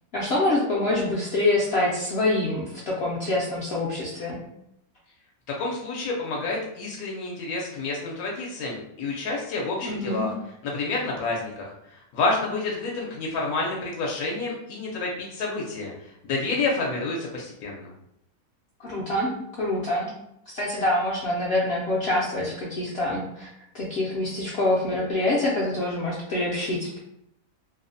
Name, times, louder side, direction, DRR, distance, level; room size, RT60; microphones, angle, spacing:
voice 1, 0.1-4.4 9.8-10.3 18.8-20.1 20.5-23.5 23.7-27.0, left 2 dB, 65° left, -5 dB, 0.6 m, -26 dB
voice 2, 5.5-10.3 10.6-17.9, left 3 dB, 80° left, -2 dB, 1.0 m, -29 dB
2.7 x 2.0 x 2.5 m, 0.79 s
omnidirectional pair, 1.5 m